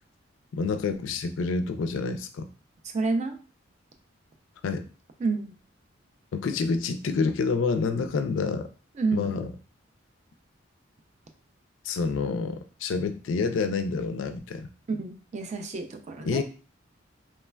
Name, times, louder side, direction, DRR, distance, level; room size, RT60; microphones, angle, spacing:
voice 1, 0.5-2.5 4.6-4.9 6.3-8.7 9.1-9.5 11.8-14.7 16.2-16.4, left 4 dB, 75° left, 9 dB, 0.3 m, -28 dB
voice 2, 2.9-3.4 5.2-5.5 9.0-9.3 14.9-16.4, right 3 dB, 35° right, 5 dB, 0.3 m, -29 dB
3.1 x 2.1 x 2.2 m, 0.36 s
head